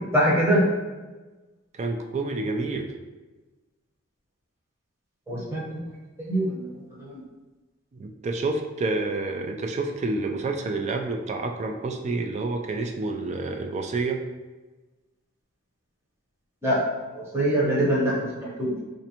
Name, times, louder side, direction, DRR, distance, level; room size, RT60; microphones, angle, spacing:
voice 1, 0.1-0.6 5.3-5.8 6.2-6.7 7.0-7.1 16.6-16.8 17.1-18.8, right 1 dB, 10° right, -6 dB, 0.9 m, -23 dB
voice 2, 1.7-2.9 7.9-14.2, right 3 dB, 35° right, 4 dB, 0.3 m, -28 dB
4.2 x 2.5 x 2.8 m, 1.2 s
head